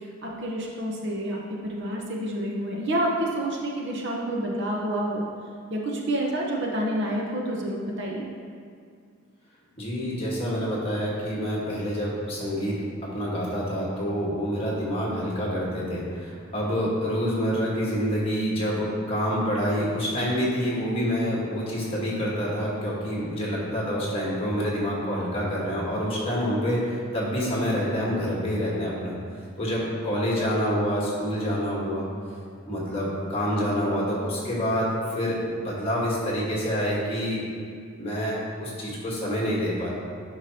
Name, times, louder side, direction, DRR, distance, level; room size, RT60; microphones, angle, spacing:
voice 1, 0.2-5.2 5.7-8.3, right 1 dB, 55° right, -2 dB, 1.0 m, -28 dB
voice 2, 9.8-29.1 29.6-32.1 32.7-37.4 38.0-39.9, equal, 25° left, -5 dB, 1.6 m, -27 dB
9.4 x 5.9 x 2.9 m, 2.2 s
head